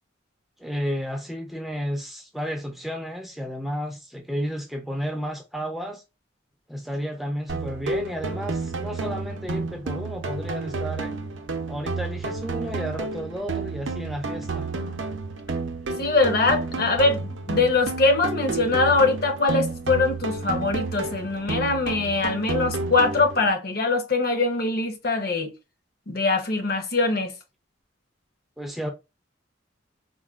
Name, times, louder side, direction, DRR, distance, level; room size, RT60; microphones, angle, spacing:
voice 1, 0.6-6.0 6.7-11.1 11.7-14.7 28.6-28.9, equal, ahead, 0.4 m, -32 dB
sound 1, 7.5-23.5, right 3 dB, 75° right, 0.5 m, -31 dB
voice 2, 16.0-25.5 26.1-27.3, left 3 dB, 50° left, 0.7 m, -22 dB
3.8 x 2.2 x 2.3 m
head